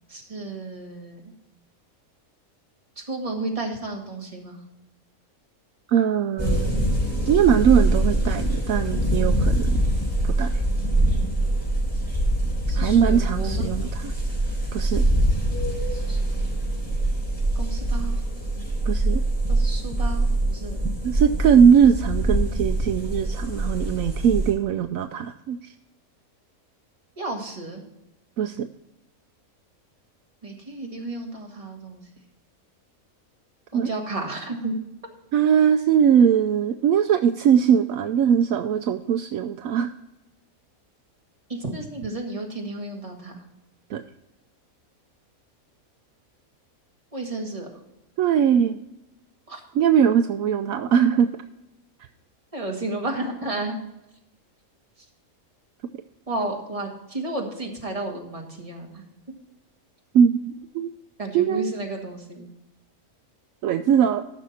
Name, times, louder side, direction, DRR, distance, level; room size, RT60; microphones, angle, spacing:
voice 1, 0.1-1.2 3.0-4.6 12.7-13.7 15.9-16.5 17.6-18.3 19.5-20.8 27.2-27.8 30.4-32.0 33.7-34.7 41.5-43.4 47.1-47.7 49.5-49.6 52.5-53.8 56.3-59.0 61.2-62.5, right 2 dB, 25° right, 0 dB, 1.9 m, -32 dB
voice 2, 5.9-6.7 7.3-9.8 10.2-10.6 12.7-14.1 14.7-15.1 18.9-19.2 21.0-25.7 28.4-28.7 33.7-33.9 35.3-39.9 43.9-44.0 48.2-48.8 49.7-51.3 60.1-60.9 61.3-61.7 63.6-64.2, right 8 dB, 75° right, 8 dB, 1.0 m, -20 dB
sound 1, 6.4-24.5, right 1 dB, 5° left, 4.4 m, -24 dB
14.0 x 6.2 x 4.2 m, 0.89 s
omnidirectional pair, 1.5 m